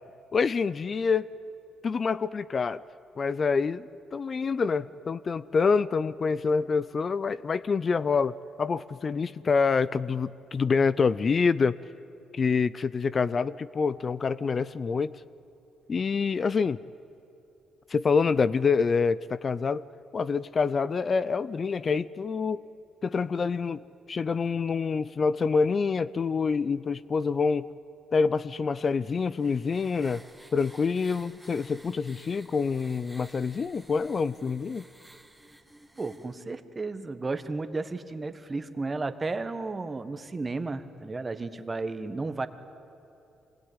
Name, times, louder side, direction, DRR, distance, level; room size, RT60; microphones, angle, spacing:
voice 1, 0.3-1.3 1.8-2.8 3.2-11.8 12.3-15.1 15.9-16.8 17.9-19.8 20.1-22.7 23.0-23.8 24.1-27.7 28.1-30.2 30.5-34.8, left 5 dB, 40° left, 17 dB, 0.5 m, -26 dB
sound 1, 28.8-36.4, right 1 dB, 5° right, 1.7 m, -53 dB
voice 2, 36.0-42.5, right 3 dB, 25° right, 10 dB, 1.4 m, -33 dB
25.0 x 20.0 x 9.8 m, 2.8 s
cardioid pair, 90°, 0 cm